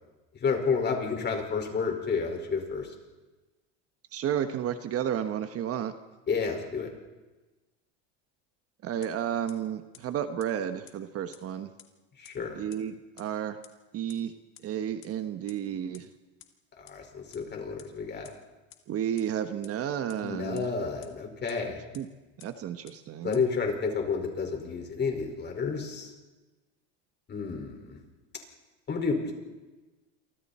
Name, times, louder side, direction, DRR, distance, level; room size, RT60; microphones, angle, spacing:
voice 1, 0.4-2.9 6.3-6.9 12.2-12.7 16.8-18.3 20.2-21.8 23.2-26.1 27.3-28.0 28.9-29.3, left 5 dB, 30° left, 3 dB, 5.3 m, -30 dB
voice 2, 4.1-5.9 8.8-11.7 12.6-13.6 13.9-14.3 14.6-16.1 18.9-20.7 21.9-22.1 22.4-23.4, right 9 dB, 40° right, 9 dB, 1.3 m, -32 dB
sound 1, 9.0-9.1 9.5-9.6 9.9-10.0 10.4-10.5 10.9-11.0 11.3-11.4 11.8-11.9 12.2-12.3 12.7-12.8 13.2-13.3 13.6-13.7 14.1-14.2 14.5-14.6 15.0-15.1 15.5-15.6 15.9-16.0 16.4-16.5 16.9-17.0 17.3-17.4 17.8-17.9 18.2-18.3 18.7-18.8 19.2-19.3 19.6-19.7 20.1-20.2 20.6-20.7 21.0-21.1 21.5-21.6 21.9-22.0 22.4-22.5 22.9-23.0 23.3-23.4, left 13 dB, 50° left, 2.6 m, -50 dB
28.5 x 25.0 x 4.4 m, 1.2 s
supercardioid pair, 125°, 36 cm